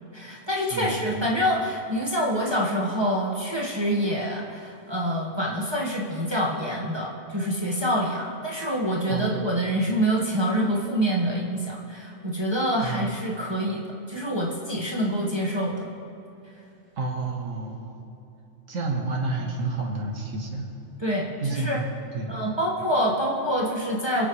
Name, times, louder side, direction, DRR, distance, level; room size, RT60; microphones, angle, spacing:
voice 1, 0.1-13.8 14.1-15.9 21.0-21.8 22.3-24.3, equal, 20° right, -4 dB, 1.5 m, -26 dB
voice 2, 0.7-1.3 9.1-9.5 12.8-13.1 17.0-17.9 18.7-20.6 21.4-21.9 22.1-22.4, right 3 dB, 80° right, -1 dB, 1.8 m, -30 dB
25.0 x 8.9 x 3.2 m, 2.8 s
omnidirectional pair, 1.3 m